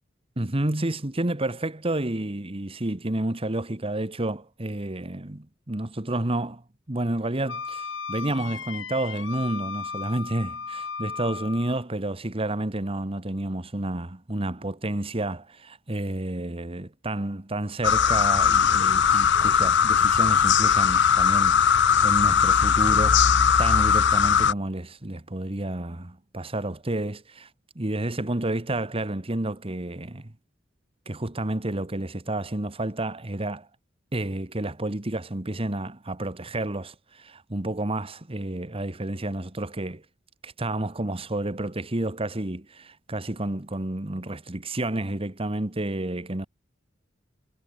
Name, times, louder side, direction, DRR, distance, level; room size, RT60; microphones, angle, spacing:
voice 1, 0.4-6.6 6.9-23.2 23.6-27.5 27.7-30.3 31.1-33.7 34.1-40.0 40.4-46.5, right 1 dB, 30° right, 1.4 m, -30 dB
Wind instrument woodwind instrument, 7.5-11.8, left 5 dB, 85° left, 4.3 m, -35 dB
sound 1, 17.8-24.5, left 7 dB, 65° left, 0.7 m, -19 dB
head